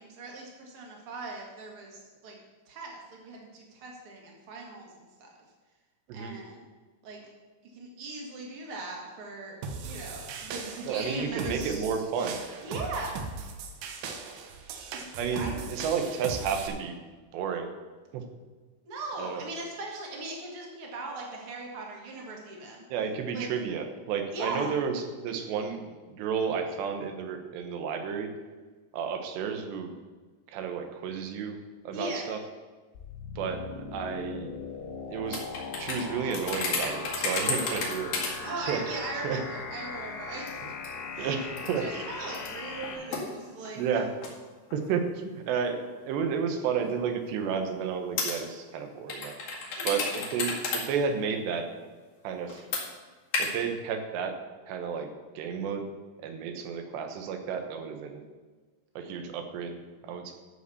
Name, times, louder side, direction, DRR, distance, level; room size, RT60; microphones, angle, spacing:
voice 1, 0.0-2.4 2.7-5.3 6.1-6.7 7.0-7.3 7.7-12.0 12.6-13.3 15.3-15.7 18.8-22.8 23.3-23.5 24.3-24.7 31.9-32.3 38.4-40.6 41.1-41.4 41.8-44.0 49.8-50.2, right 3 dB, 45° right, -1 dB, 2.1 m, -39 dB
sound 1, 9.6-16.7, right 4 dB, 70° right, 2.2 m, -39 dB
voice 2, 10.8-12.4 15.2-17.0 17.3-17.7 18.1-18.2 19.2-19.4 22.9-25.8 26.1-28.3 28.9-29.9 30.5-31.6 31.8-32.4 33.4-33.6 33.9-34.5 35.1-35.4 35.7-38.8 39.2-39.4 41.2-41.4 41.7-42.0 43.8-44.1 44.7-49.4 49.8-51.7 52.2-52.6 53.4-54.4 54.7-55.1 55.4-55.9 56.2-58.2 59.0-59.8 60.0-60.3, right 6 dB, 90° right, 6 dB, 3.3 m, -31 dB
sound 2, 33.0-43.0, left 5 dB, 85° left, 3.4 m, -39 dB
sound 3, 35.3-38.3 38.7-38.8 39.3-39.4 40.5-41.0 41.6-41.7 42.3-44.3 44.7-44.8 45.6-45.8 46.8-46.9 48.2-48.3 49.1-50.8 51.1-51.2 52.5-52.8 53.3-53.5, left 4 dB, 55° left, 3.1 m, -32 dB
12.5 x 5.2 x 6.9 m, 1.3 s
omnidirectional pair, 4.8 m